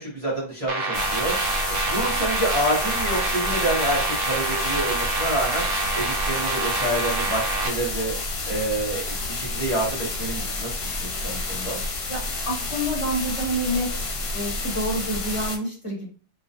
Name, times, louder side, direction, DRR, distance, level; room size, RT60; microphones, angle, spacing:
voice 1, 0.0-1.3 1.7-5.7 5.9-8.1 8.5-11.8, right 1 dB, 40° right, -6 dB, 0.8 m, -28 dB
sound 1, 0.7-7.7, right 3 dB, 70° right, 0.8 m, -27 dB
sound 2, 0.9-15.6, left 2 dB, 80° left, 0.9 m, -30 dB
voice 2, 12.4-13.9 14.3-16.1, equal, 30° left, -5 dB, 0.9 m, -27 dB
2.4 x 2.1 x 2.6 m, 0.41 s
omnidirectional pair, 1.1 m